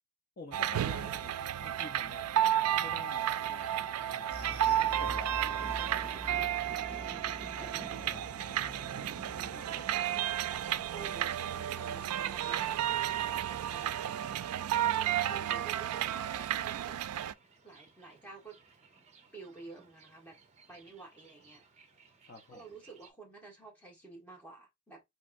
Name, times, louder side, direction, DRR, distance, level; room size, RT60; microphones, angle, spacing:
voice 1, 0.4-2.5 2.7-4.6 5.0-6.6 7.5-8.9 22.2-22.6, left 3 dB, 40° left, 0.7 m, -50 dB
sound 1, 0.5-17.3, right 11 dB, 80° right, 0.3 m, -32 dB
Thunder, 3.5-23.1, right 2 dB, 30° right, 0.7 m, -54 dB
sound 2, 4.3-13.0 13.2-13.5 13.9-14.0, right 1 dB, 80° left, 1.5 m, -48 dB
voice 2, 6.6-7.2 9.5-14.0 14.8-17.0 17.6-18.6 19.3-20.4 20.7-21.6 22.5-25.0, right 3 dB, 10° left, 1.6 m, -51 dB
4.3 x 2.9 x 2.5 m
head